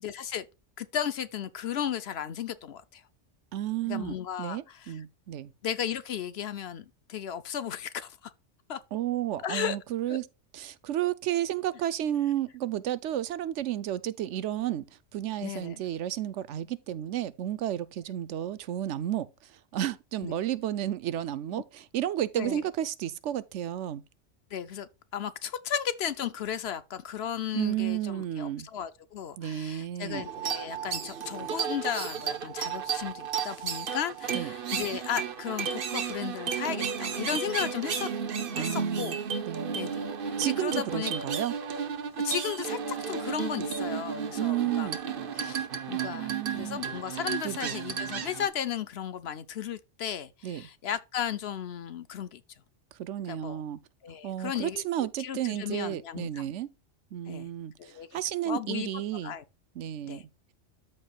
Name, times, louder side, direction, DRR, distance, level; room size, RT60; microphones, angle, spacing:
voice 1, 0.0-0.5 0.8-3.0 3.8-5.0 5.6-8.3 8.7-8.8 9.4-9.8 10.1-10.2 15.4-15.8 20.2-20.4 21.5-21.6 22.4-22.6 24.5-38.1 38.6-39.2 39.7-41.1 42.2-44.9 45.3-52.4 53.3-53.6 54.0-54.8 55.2-56.5 57.3-57.5 57.8-58.9 59.2-59.4 60.1-60.2, left 9 dB, 65° left, 0.9 m, -35 dB
voice 2, 3.5-5.5 8.9-10.3 10.5-14.8 15.1-24.0 27.5-28.7 29.4-30.2 34.3-34.5 38.5-39.2 39.5-39.8 40.4-41.5 44.4-45.0 46.1-46.8 47.4-47.8 50.4-50.6 53.0-53.8 54.2-56.7 57.1-59.3 59.8-60.2, right 12 dB, 80° right, 0.9 m, -32 dB
sound 1, 30.1-48.5, right 7 dB, 50° right, 0.9 m, -33 dB
13.0 x 4.7 x 2.3 m
omnidirectional pair, 1.2 m